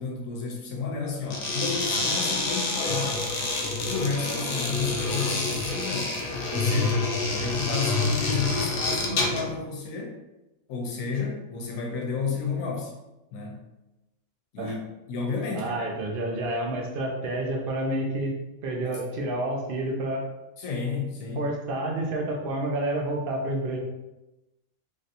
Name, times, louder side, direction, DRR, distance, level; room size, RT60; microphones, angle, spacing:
voice 1, 0.0-3.2 3.9-6.1 6.5-10.2 10.7-12.9 13.3-13.7 14.5-14.7 15.1-15.8 18.8-19.0 20.6-21.5, left 5 dB, 75° left, 0 dB, 1.1 m, -31 dB
sound 1, 1.3-9.5, left 3 dB, 60° left, 0.6 m, -27 dB
voice 2, 15.5-18.4 18.6-20.2 21.4-23.8, right 1 dB, 55° right, 1 dB, 0.6 m, -29 dB
3.2 x 2.7 x 2.5 m, 0.99 s
omnidirectional pair, 1.5 m